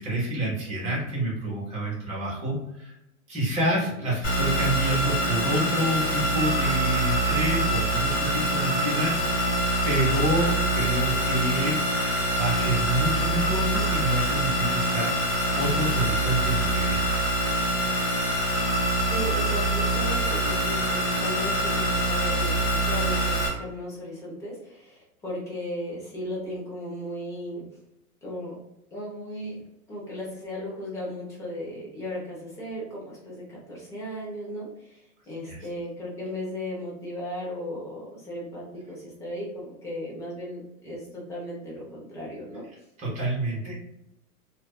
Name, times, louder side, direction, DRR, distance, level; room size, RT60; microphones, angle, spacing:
voice 1, 0.0-2.9 3.3-12.0 12.4-17.4 35.5-35.6 43.0-43.7, right 1 dB, 15° right, -4 dB, 1.0 m, -28 dB
sound 1, 4.2-23.5, right 1 dB, 30° left, 1.4 m, -25 dB
voice 2, 19.1-27.6 28.2-28.6 28.9-29.6 29.9-42.7 43.6-43.7, equal, 5° left, -5 dB, 0.4 m, -36 dB
2.5 x 2.3 x 2.2 m, 0.85 s
hypercardioid pair, 130°, 44 cm